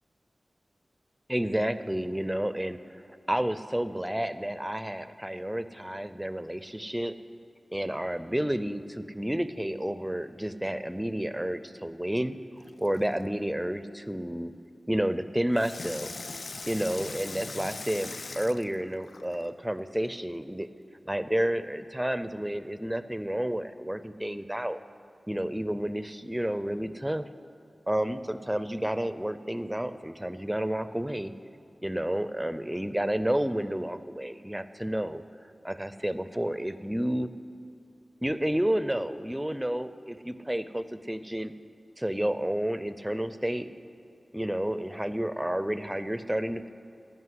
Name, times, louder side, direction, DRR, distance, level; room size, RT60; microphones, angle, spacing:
voice 1, 1.3-7.1 7.7-12.4 12.8-14.5 14.9-16.1 16.7-20.7 21.1-24.8 25.3-27.3 27.9-31.3 31.8-35.2 35.6-37.3 38.2-41.5 42.0-43.7 44.3-46.7, right 1 dB, 10° right, 12 dB, 0.5 m, -30 dB
Water tap faucet / Sink (filling or washing), 12.6-13.3 15.5-19.5 20.1-20.2, left 3 dB, 60° left, 0.4 m, -41 dB
15.5 x 5.5 x 9.6 m, 2.6 s
wide cardioid pair, 80°, 0 cm